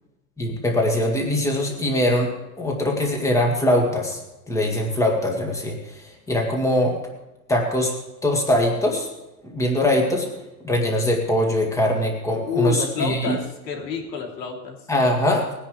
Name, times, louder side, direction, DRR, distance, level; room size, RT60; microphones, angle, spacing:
voice 1, 0.4-2.3 2.6-4.2 4.5-7.0 7.5-7.9 8.2-9.1 9.4-10.3 10.6-13.4 14.9-15.5, left 1 dB, 5° left, 0 dB, 2.0 m, -22 dB
voice 2, 12.3-14.8, left 5 dB, 85° left, 1 dB, 3.2 m, -28 dB
19.5 x 10.0 x 3.3 m, 0.99 s
supercardioid pair, 145°, 49 cm